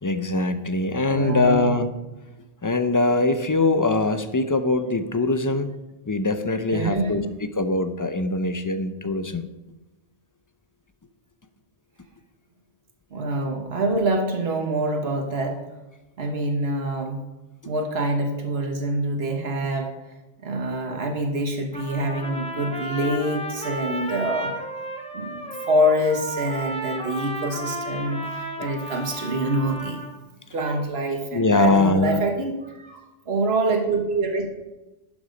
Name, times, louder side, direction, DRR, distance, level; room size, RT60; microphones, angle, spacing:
voice 1, 0.0-1.9 2.6-5.7 6.1-9.5 31.3-32.2, left 2 dB, 25° left, 10 dB, 0.6 m, -22 dB
voice 2, 1.1-1.8 6.7-7.2 13.1-15.6 16.2-17.2 17.6-19.9 20.4-24.5 25.1-30.0 30.5-34.5, right 1 dB, 90° right, 2 dB, 1.5 m, -25 dB
Trumpet, 21.7-30.1, equal, 5° left, 1.1 m, -33 dB
11.5 x 7.0 x 5.2 m, 1.0 s
omnidirectional pair, 1.0 m